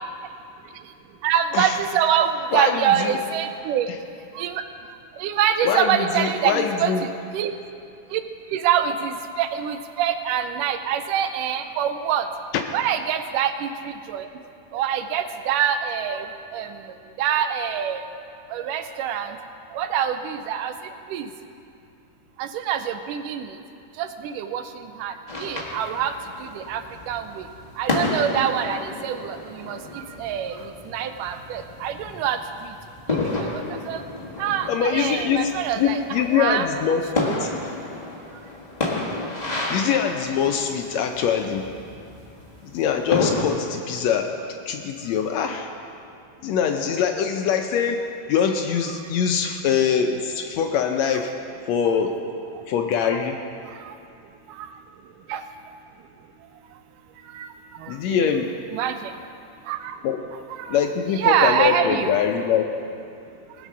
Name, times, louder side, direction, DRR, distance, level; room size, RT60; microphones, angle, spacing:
voice 1, 1.2-3.9 4.4-4.6 5.2-6.9 7.3-7.5 8.1-8.2 8.5-12.3 12.7-14.3 14.7-16.3 16.5-16.8 17.2-18.0 18.5-19.4 19.7-20.7 21.1-21.3 22.4-23.6 24.0-25.1 25.4-26.1 26.4-27.4 27.8-32.7 33.1-34.0 34.4-36.6 37.2-37.4 53.9-54.0 54.5-54.7 55.3-55.4 57.3-57.5 57.8-58.3 58.7-59.1 59.7-59.9 60.6-60.8 61.1-62.1, right 9 dB, 80° right, 9 dB, 2.1 m, -25 dB
voice 2, 2.5-3.2 5.6-7.0 34.7-37.6 39.7-41.7 42.7-44.3 44.7-45.7 46.4-51.3 51.7-52.1 52.7-53.4 57.9-58.5 60.0-60.2 60.7-62.7, left 7 dB, 85° left, 4 dB, 1.5 m, -23 dB
sound 1, 25.3-43.4, left 2 dB, 50° left, 0.4 m, -31 dB
19.5 x 7.5 x 6.2 m, 2.5 s
omnidirectional pair, 3.9 m